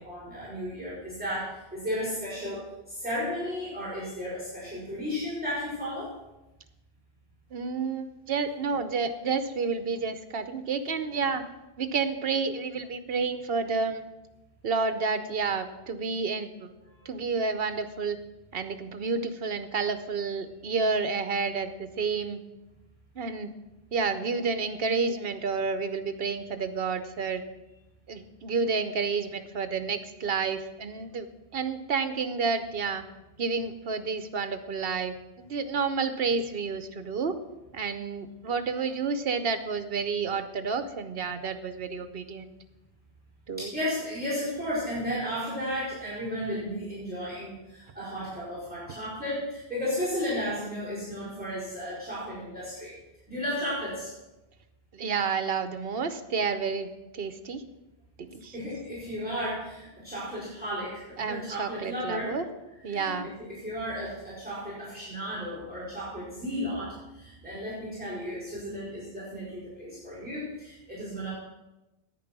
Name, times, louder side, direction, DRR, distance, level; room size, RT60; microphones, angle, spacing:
voice 1, 0.0-6.1 16.9-17.1 43.6-52.9 53.3-54.1 58.5-62.4 62.9-63.2 63.5-71.3, equal, 10° right, -9 dB, 4.6 m, -34 dB
voice 2, 7.5-11.4 11.8-14.0 14.6-16.7 17.0-18.2 18.5-22.4 23.2-23.5 23.9-27.4 28.1-31.3 31.5-33.0 33.4-37.4 37.7-42.5 43.5-43.7 54.9-56.9 57.1-57.6 58.2-58.5 61.2-62.5 62.8-63.3, right 5 dB, 60° right, 10 dB, 1.0 m, -30 dB
10.5 x 9.4 x 6.0 m, 0.99 s
omnidirectional pair, 1.1 m